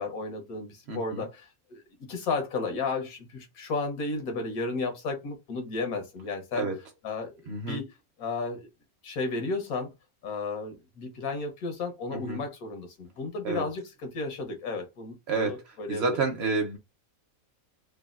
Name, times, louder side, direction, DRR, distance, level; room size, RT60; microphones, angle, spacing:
voice 1, 0.0-6.7 7.0-7.4 7.7-7.9 8.2-8.7 9.0-9.9 10.2-16.2, left 3 dB, 85° left, 1.4 m, -33 dB
voice 2, 0.9-1.3 6.5-6.8 7.5-7.8 12.1-12.4 13.4-13.7 15.3-16.8, right 3 dB, 55° right, 0.9 m, -30 dB
3.3 x 2.2 x 2.4 m
omnidirectional pair, 1.5 m